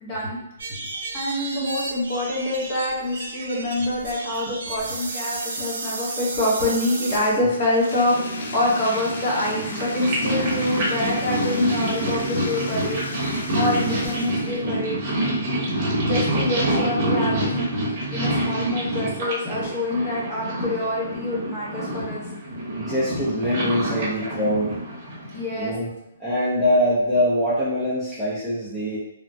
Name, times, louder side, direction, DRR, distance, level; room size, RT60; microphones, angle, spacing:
voice 1, 0.0-0.4 0.8-0.9 1.1-15.8 16.0-22.2 25.3-25.7, left 1 dB, 20° left, -6 dB, 0.8 m, -26 dB
sound 1, 0.6-7.4, right 3 dB, 70° right, 0.6 m, -33 dB
Bathtub (filling or washing), 7.5-14.7, left 2 dB, 70° left, 0.5 m, -37 dB
Purr, 7.9-25.6, right 1 dB, 25° right, 0.9 m, -27 dB
voice 2, 22.8-24.8 25.5-25.9 26.2-29.0, equal, ahead, -13 dB, 0.5 m, -23 dB
3.2 x 2.1 x 2.6 m, 0.83 s
hypercardioid pair, 170°, 0 cm